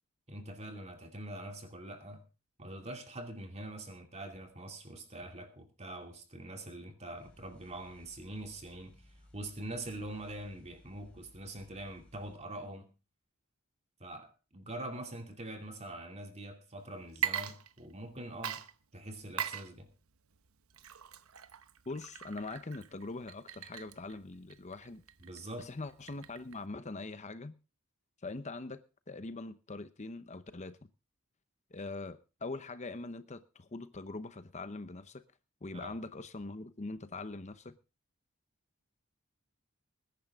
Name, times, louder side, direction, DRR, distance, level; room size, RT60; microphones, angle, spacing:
voice 1, 0.3-2.2 2.6-9.0 9.3-12.9 14.0-18.6 18.9-19.9 25.2-25.7 35.7-36.0, right 1 dB, 30° right, 2.5 m, -44 dB
sound 1, 7.1-12.4, left 1 dB, 5° left, 4.4 m, -61 dB
Water / Liquid, 17.1-18.1 18.4-26.7, right 8 dB, 85° right, 0.9 m, -41 dB
voice 2, 21.9-25.0 25.6-27.6 28.2-28.8 29.1-30.9 31.7-35.2 35.6-37.8, left 3 dB, 35° left, 0.8 m, -42 dB
20.5 x 10.5 x 3.6 m
head